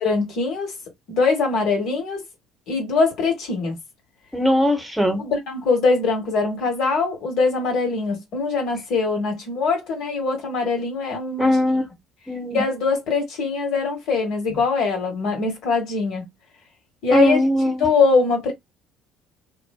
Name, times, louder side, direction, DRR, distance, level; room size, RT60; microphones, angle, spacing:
voice 1, 0.0-0.7 1.1-2.2 2.7-3.8 5.2-11.6 12.5-16.3 17.0-17.4 17.8-18.5, left 4 dB, 65° left, 1.2 m, -22 dB
voice 2, 4.3-5.2 11.4-11.8 12.3-12.6 17.1-17.8, equal, 5° right, 0.8 m, -19 dB
2.5 x 2.2 x 2.3 m
hypercardioid pair, 65°, 0 cm